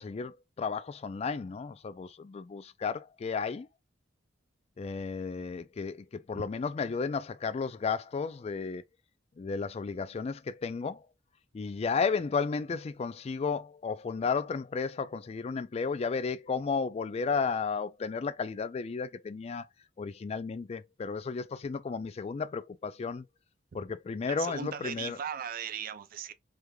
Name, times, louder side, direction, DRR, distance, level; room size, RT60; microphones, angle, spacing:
voice 1, 0.0-3.7 4.8-8.8 9.4-11.0 11.5-19.7 20.0-23.3 23.7-25.2, left 5 dB, 35° left, 0.3 m, -33 dB
voice 2, 24.2-26.3, right 8 dB, 50° right, 0.4 m, -38 dB
3.3 x 3.2 x 2.3 m
head